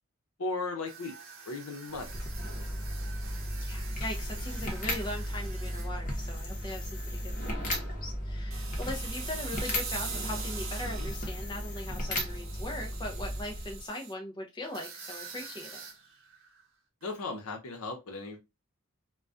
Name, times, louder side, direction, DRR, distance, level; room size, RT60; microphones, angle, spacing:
voice 1, 0.4-2.1 10.8-11.1 17.0-18.4, left 3 dB, 80° left, 0.7 m, -37 dB
sound 1, 0.9-7.0 7.3-7.6 8.5-11.3 11.8-14.1 14.6-16.6 17.0-17.2, right 5 dB, 65° right, 0.7 m, -44 dB
sound 2, 1.9-13.9, equal, 35° left, 0.8 m, -35 dB
voice 2, 3.6-15.8, left 1 dB, 20° left, 0.4 m, -40 dB
2.2 x 2.2 x 2.5 m
head